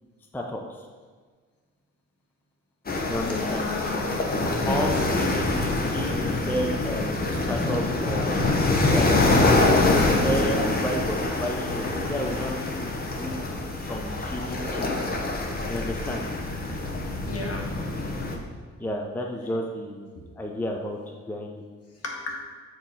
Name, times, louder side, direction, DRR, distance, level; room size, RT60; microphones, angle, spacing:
voice 1, 0.3-0.9 3.1-3.7 4.0-4.2 4.7-5.5 5.7-9.4 9.8-14.9 15.7-16.2 18.8-20.1 20.3-21.6, equal, 5° left, 1 dB, 0.5 m, -32 dB
sound 1, 2.9-18.4, left 2 dB, 30° left, 0.9 m, -25 dB
voice 2, 3.2-4.2 4.5-4.9 17.3-17.7 22.0-22.3, left 3 dB, 55° left, -1 dB, 1.4 m, -32 dB
6.9 x 3.1 x 5.3 m, 1.6 s
cardioid pair, 90°, 30 cm